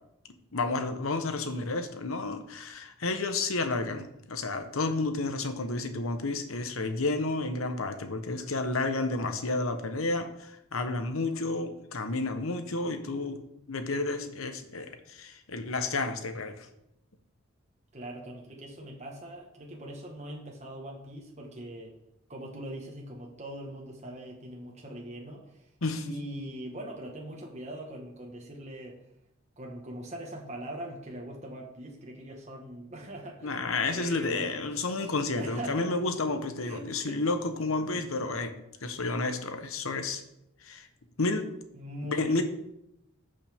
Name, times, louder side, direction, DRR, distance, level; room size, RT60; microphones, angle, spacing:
voice 1, 0.5-13.4 13.7-16.7 25.8-26.1 33.4-40.2 40.6-40.9 41.2-41.5 42.0-42.4, left 3 dB, 75° left, 7 dB, 1.1 m, -31 dB
voice 2, 17.9-21.9 22.3-25.7 26.0-29.0 29.6-33.7 33.9-36.0 36.6-37.2 37.9-38.0 41.7-42.4, right 1 dB, 30° right, -1 dB, 1.4 m, -42 dB
14.0 x 5.5 x 3.6 m, 0.81 s
head